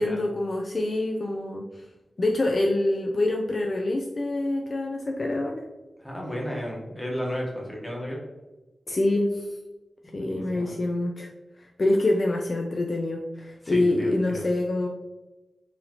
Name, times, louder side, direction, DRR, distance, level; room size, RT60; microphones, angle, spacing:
voice 1, 0.0-1.8 2.2-5.7 8.9-9.5 10.1-11.3 11.6-14.9, left 2 dB, 40° left, 1 dB, 0.3 m, -26 dB
voice 2, 6.0-8.2 10.1-10.8 13.6-14.4, equal, 10° left, -3 dB, 1.0 m, -33 dB
4.0 x 2.7 x 2.9 m, 1.1 s
wide cardioid pair, 140°, 0 cm